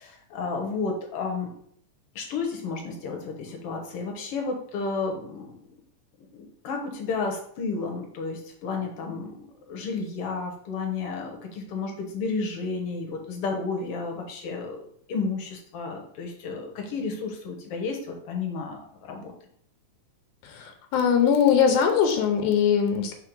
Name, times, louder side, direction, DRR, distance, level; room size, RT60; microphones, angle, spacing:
voice 1, 0.0-1.5 2.2-5.6 6.4-9.4 9.7-19.3, left 4 dB, 60° left, 2 dB, 1.7 m, -32 dB
voice 2, 20.4-23.1, left 7 dB, 85° left, 5 dB, 2.2 m, -21 dB
4.6 x 4.3 x 5.2 m, 0.63 s
omnidirectional pair, 3.5 m